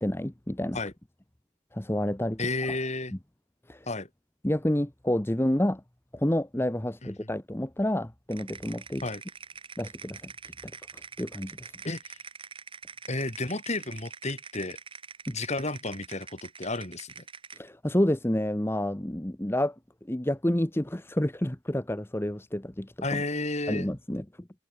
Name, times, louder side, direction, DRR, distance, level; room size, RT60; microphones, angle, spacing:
voice 1, 0.0-0.8 1.7-2.4 3.7-3.9 4.4-5.8 6.1-9.0 9.8-10.3 11.2-11.7 15.3-15.4 17.5-19.7 20.1-23.2 23.7-24.5, left 1 dB, 10° left, 0.9 m, -29 dB
voice 2, 2.4-3.1 3.9-4.1 7.0-7.3 9.0-9.2 11.8-12.2 13.1-14.8 15.3-17.2 23.0-23.9, left 2 dB, 30° left, 2.8 m, -32 dB
sound 1, 8.3-17.7, right 6 dB, 25° right, 1.5 m, -45 dB
head